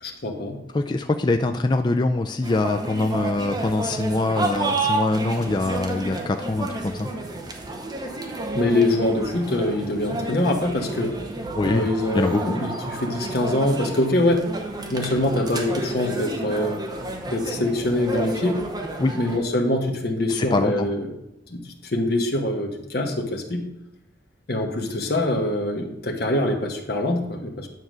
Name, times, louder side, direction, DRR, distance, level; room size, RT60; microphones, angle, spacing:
voice 1, 0.0-0.6 8.5-11.1 11.6-14.5 14.9-16.8 17.3-18.6 19.1-21.1 21.5-21.6 21.9-23.6 24.5-27.7, left 1 dB, 55° left, 2 dB, 1.1 m, -24 dB
voice 2, 0.7-7.1 11.5-11.9 12.1-12.6 19.0-19.2 20.3-20.9, left 2 dB, 25° left, 6 dB, 0.3 m, -23 dB
sound 1, 2.4-19.4, right 2 dB, 20° right, 0.8 m, -30 dB
9.4 x 3.9 x 6.1 m, 0.88 s
head